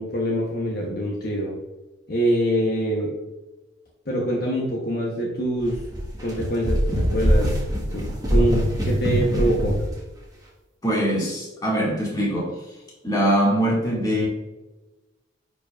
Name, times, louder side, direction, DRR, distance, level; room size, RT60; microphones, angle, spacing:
voice 1, 0.0-1.6 2.1-3.1 4.1-5.8 6.2-7.6 7.9-8.0 8.3-9.8, equal, 50° left, -2 dB, 1.0 m, -24 dB
sound 1, 5.6-10.0, equal, 20° right, 1.4 m, -23 dB
voice 2, 10.8-12.6 13.0-14.3, equal, 20° left, -4 dB, 2.0 m, -22 dB
10.0 x 4.9 x 2.5 m, 1.1 s
head